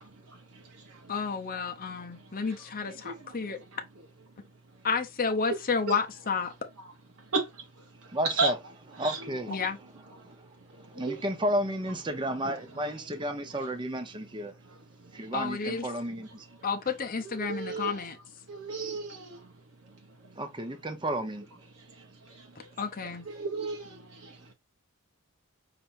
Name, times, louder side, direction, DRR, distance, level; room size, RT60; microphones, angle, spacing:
voice 1, 1.1-3.6 4.8-6.5 9.5-9.8 15.3-15.9 16.6-18.2 22.8-23.3, left 5 dB, 40° left, 0.7 m, -31 dB
voice 2, 8.1-8.6 9.0-9.6 10.2-10.3 10.9-14.5 15.1-16.5 20.4-21.5, right 1 dB, 20° right, 0.9 m, -32 dB
voice 3, 17.3-17.9 18.5-19.4 23.3-23.9, right 3 dB, 75° right, 1.0 m, -31 dB
5.7 x 3.5 x 2.6 m
head